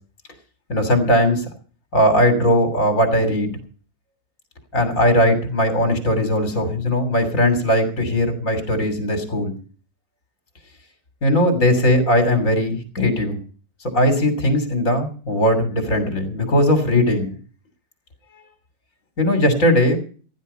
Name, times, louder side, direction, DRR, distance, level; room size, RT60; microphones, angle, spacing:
voice 1, 0.7-1.4 1.9-3.5 4.7-9.5 11.2-13.4 13.9-17.3 19.2-20.0, equal, 50° left, 7 dB, 3.4 m, -19 dB
15.5 x 11.0 x 5.6 m, 0.41 s
omnidirectional pair, 1.8 m